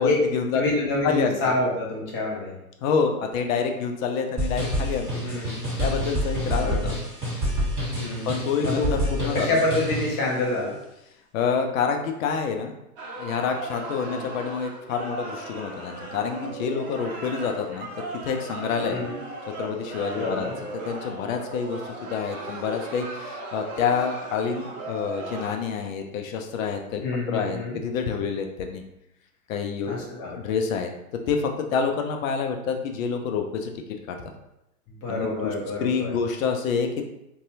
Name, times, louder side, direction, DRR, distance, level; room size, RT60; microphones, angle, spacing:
voice 1, 0.0-1.4 2.8-5.3 5.8-7.0 8.2-9.6 11.3-12.8 13.2-17.9 18.2-19.0 19.5-27.0 27.3-28.8 29.5-30.9 31.3-33.7 34.1-34.2 35.1-35.5 35.8-36.9, left 6 dB, 60° left, 4 dB, 0.6 m, -27 dB
voice 2, 0.5-2.6 5.2-5.6 6.6-6.9 8.0-8.3 8.6-10.8 14.0-14.3 18.9-19.2 20.2-20.5 27.0-27.8 29.8-30.3 34.9-36.1, left 2 dB, 35° left, -3 dB, 0.8 m, -27 dB
sound 1, 4.4-10.2, equal, 10° right, 1.5 m, -28 dB
sound 2, 13.0-25.5, right 2 dB, 35° right, 0.6 m, -37 dB
2.6 x 2.3 x 2.6 m, 0.86 s
hypercardioid pair, 115°, 45 cm